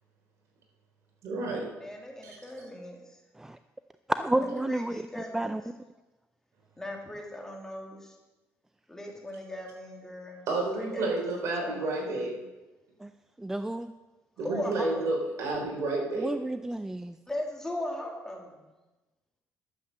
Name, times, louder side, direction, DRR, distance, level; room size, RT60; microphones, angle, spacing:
voice 1, 1.2-1.7 2.2-2.4 10.5-12.3 14.4-16.3, right 2 dB, 65° right, 0 dB, 3.8 m, -30 dB
voice 2, 1.8-3.0 4.4-5.5 6.8-8.1 8.9-10.5 10.9-12.3 14.4-15.1 17.3-18.7, left 1 dB, 10° left, 0 dB, 2.5 m, -38 dB
voice 3, 4.1-5.6 13.0-13.1 13.4-13.9 16.1-17.2, right 1 dB, 10° right, 10 dB, 0.4 m, -31 dB
11.5 x 7.8 x 6.6 m, 1.1 s
cardioid pair, 115°, 5 cm